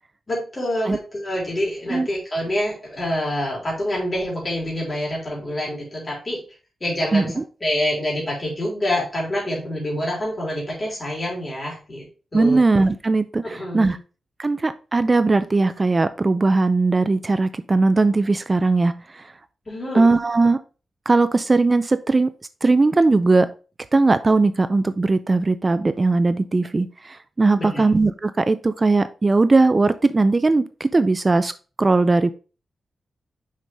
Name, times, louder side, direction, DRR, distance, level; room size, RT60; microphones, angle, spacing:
voice 1, 0.3-6.4 6.8-12.1 12.3-12.6 13.4-14.0 19.7-20.0 27.6-27.8, left 1 dB, 25° left, -3 dB, 3.7 m, -26 dB
voice 2, 7.1-7.4 12.3-14.0 14.4-19.2 19.9-20.6 21.1-22.3 22.6-23.5 23.9-31.5 31.8-32.3, right 3 dB, 25° right, 12 dB, 0.4 m, -19 dB
6.4 x 5.4 x 3.4 m, 0.34 s
wide cardioid pair, 145°, 0 cm